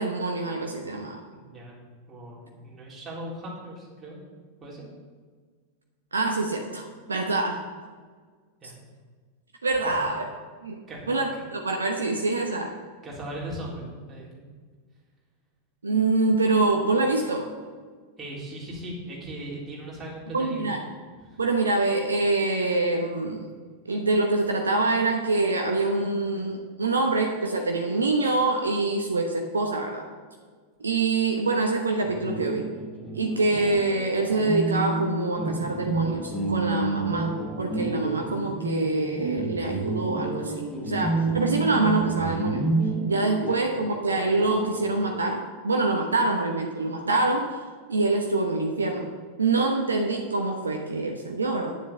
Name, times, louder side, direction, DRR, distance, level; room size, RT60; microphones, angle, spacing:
voice 1, 0.0-1.2 6.1-7.6 9.6-10.2 10.6-10.8 11.1-12.7 15.8-17.5 20.3-20.8 21.4-23.5 23.8-30.0 30.8-32.7 33.1-37.3 37.6-42.7 43.0-47.6 47.9-49.1 49.4-51.7, right 3 dB, 75° right, 2 dB, 0.9 m, -25 dB
voice 2, 1.3-1.7 2.1-4.2 4.6-4.8 8.6-8.8 9.8-9.9 10.9-11.1 11.3-11.4 13.0-14.4 18.2-20.7 21.2-21.4 43.4-43.6, right 1 dB, 20° right, -6 dB, 3.8 m, -38 dB
sound 1, 32.0-45.3, right 2 dB, ahead, 2.2 m, -30 dB
9.4 x 7.2 x 6.8 m, 1.5 s
figure-of-eight pair, 90°, 0 cm